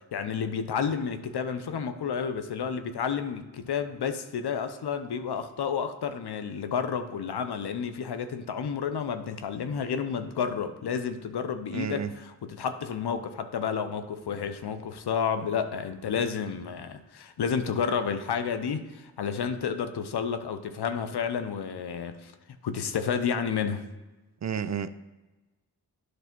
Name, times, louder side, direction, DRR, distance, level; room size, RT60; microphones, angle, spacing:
voice 1, 0.1-22.3 22.6-23.9, left 6 dB, 85° left, 0.7 m, -31 dB
voice 2, 11.7-12.1 24.4-24.9, right 7 dB, 45° right, 0.5 m, -31 dB
9.6 x 3.3 x 5.9 m
cardioid pair, 40°, 38 cm